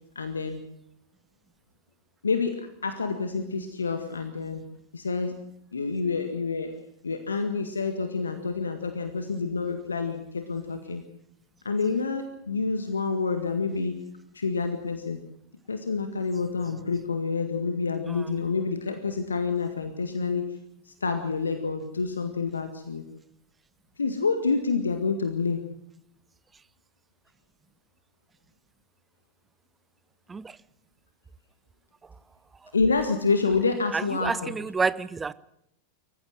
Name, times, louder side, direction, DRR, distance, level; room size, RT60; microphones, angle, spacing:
voice 1, 0.2-0.6 2.2-4.6 4.9-5.4 5.7-6.7 7.0-11.0 11.7-14.0 14.3-15.2 15.7-20.5 20.9-23.0 24.0-25.7 32.7-34.5, left 4 dB, 75° left, 1.9 m, -28 dB
voice 2, 18.1-18.4 30.3-30.6 32.6-32.7 33.9-35.3, right 4 dB, 15° right, 0.8 m, -30 dB
24.5 x 15.0 x 7.7 m
figure-of-eight pair, 90°, 0 cm